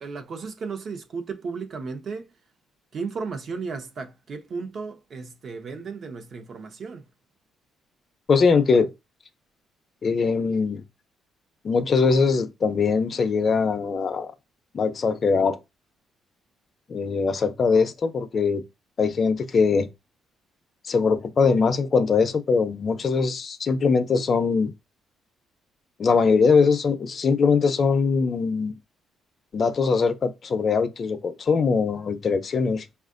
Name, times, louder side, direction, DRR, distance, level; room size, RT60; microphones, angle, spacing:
voice 1, 0.0-2.3 2.9-7.1, right 4 dB, 50° right, 0.8 m, -34 dB
voice 2, 8.3-8.9 10.0-10.8 11.6-14.3 14.7-15.6 16.9-18.6 19.0-19.9 20.9-24.7 26.0-28.7 29.5-32.9, left 5 dB, 45° left, 0.5 m, -21 dB
5.4 x 2.4 x 2.5 m
cardioid pair, 105°, 0 cm